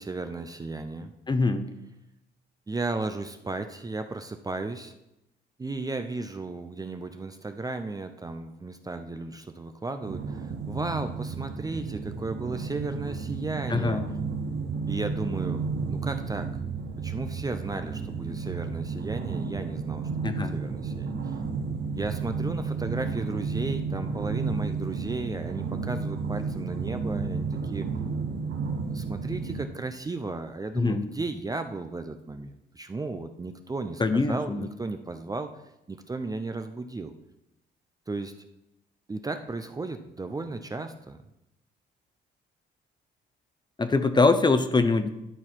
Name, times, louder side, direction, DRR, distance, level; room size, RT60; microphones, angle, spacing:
voice 1, 0.0-1.1 2.7-4.9 5.6-14.0 14.9-16.5 17.0-21.4 21.9-27.9 28.8-35.5 35.9-37.1 38.1-38.3 39.1-41.2, right 3 dB, 20° right, 7 dB, 0.5 m, -35 dB
voice 2, 1.3-1.7 13.7-14.1 20.2-20.6 30.7-31.1 34.0-34.7 43.8-45.1, left 3 dB, 20° left, 10 dB, 0.7 m, -23 dB
sound 1, 10.0-29.6, right 4 dB, 55° right, 0.9 m, -32 dB
11.5 x 4.0 x 4.6 m, 0.87 s
cardioid pair, 90°, 20 cm